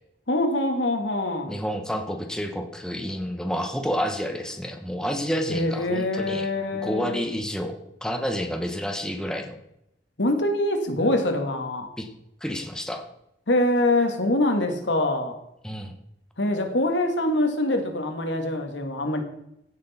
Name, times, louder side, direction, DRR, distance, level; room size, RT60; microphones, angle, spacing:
voice 1, 0.3-1.6 5.5-7.2 10.2-11.9 13.5-15.4 16.4-19.2, left 1 dB, 85° left, 5 dB, 1.8 m, -24 dB
voice 2, 1.5-6.5 6.8-9.6 12.0-12.1 12.4-13.0 15.6-16.0, equal, 5° left, 4 dB, 1.1 m, -29 dB
16.0 x 6.3 x 4.2 m, 0.80 s
head